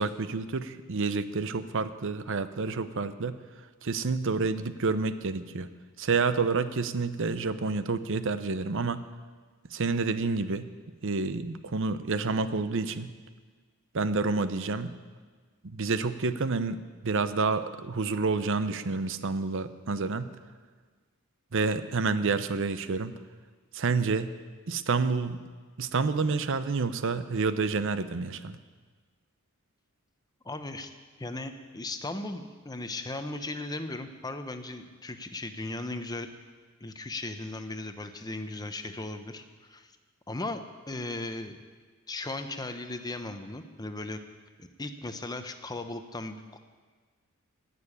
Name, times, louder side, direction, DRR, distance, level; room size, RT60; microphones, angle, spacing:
voice 1, 0.0-3.4 3.8-5.7 6.0-9.0 9.7-10.7 11.0-13.1 13.9-14.9 15.6-16.8 17.0-20.3 21.5-23.1 23.7-24.3 24.7-25.4 25.8-28.5, right 4 dB, 60° right, 12 dB, 0.7 m, -29 dB
voice 2, 30.4-30.9 31.2-36.3 36.8-39.9 40.3-40.6 40.9-41.6 42.1-44.2 44.6-46.6, left 2 dB, 20° left, 8 dB, 0.8 m, -37 dB
15.5 x 6.9 x 9.9 m, 1.5 s
head